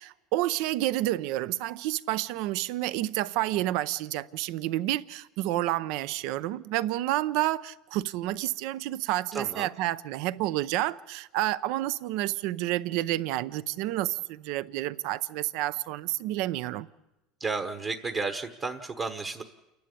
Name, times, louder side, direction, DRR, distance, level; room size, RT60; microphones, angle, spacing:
voice 1, 0.0-16.9, right 15 dB, 65° right, 0.6 m, -29 dB
voice 2, 9.3-9.7 17.4-19.4, right 4 dB, 30° right, 1.2 m, -32 dB
29.0 x 11.5 x 8.5 m
supercardioid pair, 140°, 0 cm